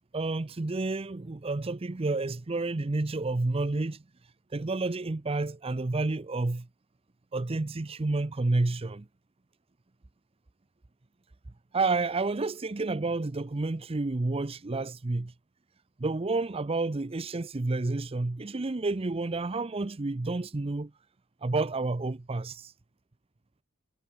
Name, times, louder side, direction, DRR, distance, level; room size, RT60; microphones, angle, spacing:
voice 1, 0.1-4.0 4.5-6.7 7.3-9.0 11.7-15.3 16.0-20.9 21.4-22.7, right 3 dB, 30° right, 0.6 m, -30 dB
head